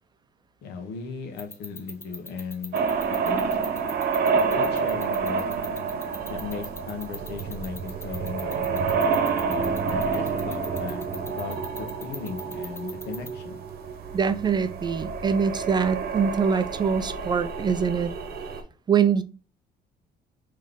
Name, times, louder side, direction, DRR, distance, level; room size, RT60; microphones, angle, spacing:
voice 1, 0.6-2.8 3.3-3.4 4.5-5.5 6.3-8.9 9.4-13.6, left 5 dB, 80° left, 1.1 m, -37 dB
sound 1, 1.4-13.3, left 2 dB, 15° left, 0.8 m, -39 dB
sound 2, 2.7-18.6, right 5 dB, 65° right, 0.9 m, -28 dB
voice 2, 14.1-18.1 18.9-19.2, right 6 dB, 25° right, 0.3 m, -24 dB
3.7 x 3.1 x 3.5 m
cardioid pair, 110°, 17 cm